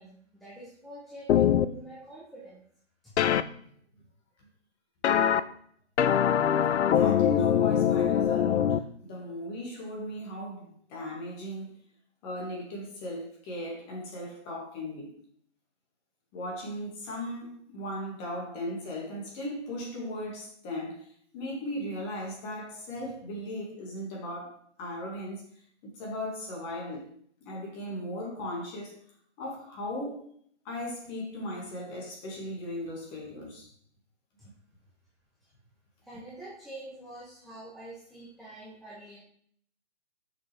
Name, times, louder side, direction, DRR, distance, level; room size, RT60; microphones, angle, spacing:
voice 1, 0.0-2.6 3.0-3.1 34.4-34.5 36.0-39.2, right 1 dB, ahead, -8 dB, 0.7 m, -46 dB
sound 1, 1.3-1.7 3.2-3.4 5.0-5.4 6.0-8.8, left 9 dB, 70° left, 0.6 m, -23 dB
voice 2, 6.6-11.7 12.2-15.1 16.3-21.1 21.3-25.4 25.8-27.1 27.4-29.0 29.4-30.3 30.6-33.7, left 1 dB, 25° left, -2 dB, 2.2 m, -37 dB
6.5 x 6.0 x 3.5 m, 0.63 s
hypercardioid pair, 150°, 36 cm